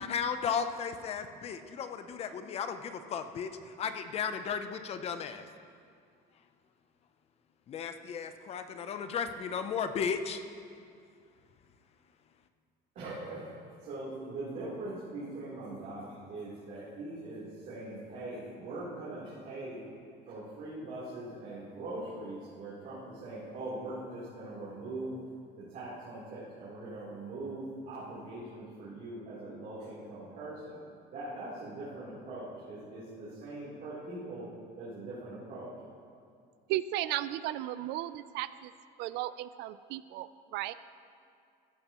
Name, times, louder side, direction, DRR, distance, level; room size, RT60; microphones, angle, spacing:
voice 1, 0.0-5.5 6.3-6.5 7.7-10.4, left 6 dB, 35° left, 9 dB, 0.6 m, -35 dB
voice 2, 13.0-13.5 13.8-19.8 20.3-25.2 25.6-30.8 31.1-34.5 34.8-35.7, right 2 dB, 50° right, -10 dB, 3.4 m, -41 dB
voice 3, 36.7-38.7 39.0-40.7, right 14 dB, 70° right, 15 dB, 0.4 m, -35 dB
14.5 x 12.0 x 3.0 m, 2.3 s
cardioid pair, 165°, 18 cm